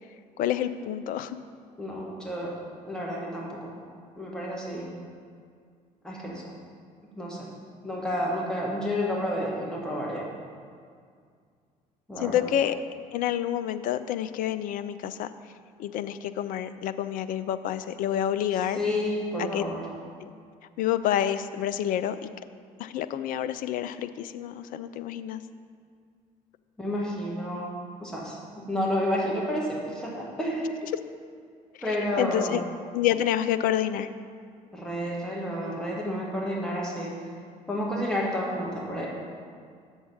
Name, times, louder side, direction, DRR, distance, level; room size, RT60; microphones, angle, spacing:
voice 1, 0.4-1.4 12.2-12.8 13.1-15.3 15.8-18.8 19.4-19.6 20.2-20.3 20.8-22.3 22.8-25.4 32.2-32.6 32.9-34.1, left 11 dB, 45° left, 11 dB, 0.4 m, -28 dB
voice 2, 1.8-2.5 2.8-3.7 4.2-4.9 6.0-6.4 7.2-7.5 7.8-10.2 12.1-12.3 18.7-19.9 26.8-27.7 28.0-30.8 31.8-32.6 34.7-37.1 37.7-39.1, equal, 5° left, -4 dB, 1.6 m, -30 dB
7.1 x 6.3 x 5.4 m, 2.1 s
figure-of-eight pair, 55°, 20 cm